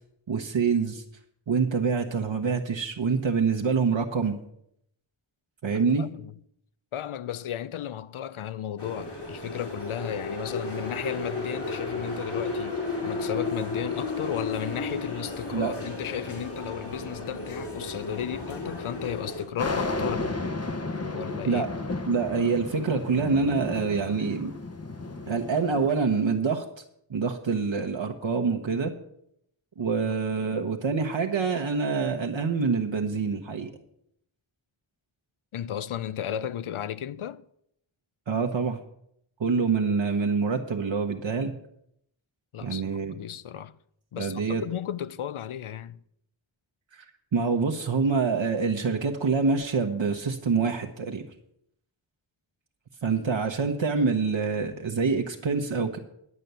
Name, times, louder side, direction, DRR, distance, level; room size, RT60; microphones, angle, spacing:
voice 1, 0.3-1.0 1.5-4.4 5.6-6.1 15.5-15.8 21.4-21.7 22.1-24.5 25.3-26.6 27.1-28.9 29.8-33.7 38.3-38.8 39.4-41.5 42.6-43.1 44.2-44.6 46.9-47.1 47.3-51.2 53.0-56.0, right 5 dB, 65° right, 1.1 m, -26 dB
voice 2, 5.7-6.3 6.9-20.3 21.1-21.6 30.0-30.1 35.5-37.4 42.5-43.8 44.1-46.0, left 10 dB, 80° left, 0.6 m, -34 dB
sound 1, 8.8-19.5, left 3 dB, 55° left, 3.5 m, -34 dB
sound 2, 19.6-25.9, left 2 dB, 30° left, 0.9 m, -33 dB
11.0 x 7.5 x 6.8 m
wide cardioid pair, 80°, 49 cm